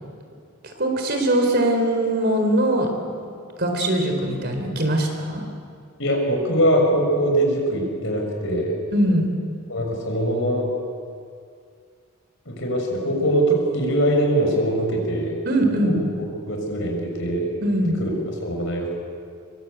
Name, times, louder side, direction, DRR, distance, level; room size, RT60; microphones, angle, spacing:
voice 1, 0.8-3.2 3.6-5.4 8.9-9.3 15.4-16.0 17.6-18.0, right 1 dB, 45° right, 4 dB, 4.3 m, -21 dB
voice 2, 6.0-8.7 9.7-10.7 12.4-15.3 15.8-17.5 18.0-18.1 18.4-18.9, right 1 dB, 55° left, 1 dB, 6.7 m, -22 dB
26.5 x 23.5 x 8.4 m, 2.3 s
head